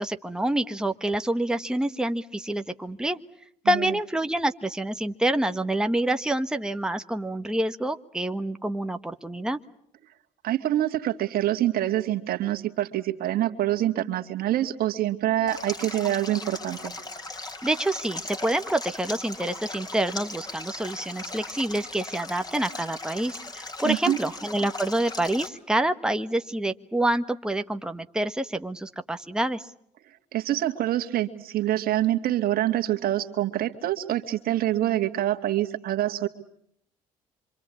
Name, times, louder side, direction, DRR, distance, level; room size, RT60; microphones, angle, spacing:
voice 1, 0.0-3.2 3.6-9.6 17.6-29.7, right 1 dB, 5° right, 7 dB, 1.4 m, -27 dB
voice 2, 10.4-17.0 23.8-24.2 30.3-36.3, right 13 dB, 65° right, 6 dB, 2.3 m, -26 dB
Stream, 15.5-25.5, left 2 dB, 25° left, 4.6 m, -38 dB
26.0 x 25.5 x 8.6 m, 0.69 s
supercardioid pair, 65°, 16 cm